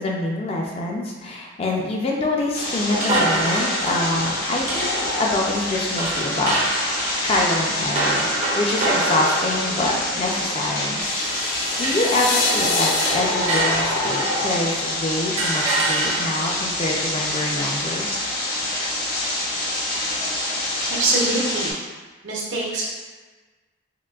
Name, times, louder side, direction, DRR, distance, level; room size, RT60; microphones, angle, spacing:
voice 1, 0.0-6.6 6.8-8.3 8.5-11.0 11.5-18.1, left 2 dB, 30° left, -1 dB, 0.3 m, -25 dB
sound 1, 2.5-21.7, left 1 dB, 50° left, 0.7 m, -26 dB
sound 2, 2.9-11.5 11.8-14.8 15.4-16.6, right 2 dB, 35° right, 0.5 m, -27 dB
sound 3, 11.0-15.1, left 3 dB, 90° left, 0.5 m, -27 dB
voice 2, 20.9-21.8 22.2-22.9, right 2 dB, 70° right, -4 dB, 0.7 m, -24 dB
3.7 x 2.6 x 2.3 m, 1.3 s
head